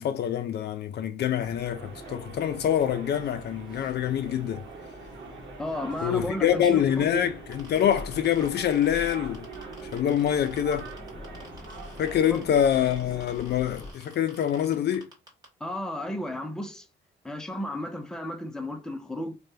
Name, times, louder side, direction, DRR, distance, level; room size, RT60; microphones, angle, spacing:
voice 1, 0.0-4.6 6.0-9.5 9.9-10.9 12.0-15.1, left 10 dB, 55° left, 0.4 m, -25 dB
sound 1, 1.4-13.9, left 2 dB, 20° left, 1.0 m, -45 dB
sound 2, 1.6-13.3, right 5 dB, 70° right, 0.9 m, -45 dB
voice 2, 5.6-7.3 12.3-12.4 15.6-16.9 17.2-19.4, left 1 dB, 5° left, 0.5 m, -33 dB
sound 3, 7.5-15.5, right 1 dB, 20° right, 1.6 m, -51 dB
3.1 x 2.2 x 2.7 m
cardioid pair, 90°, 20 cm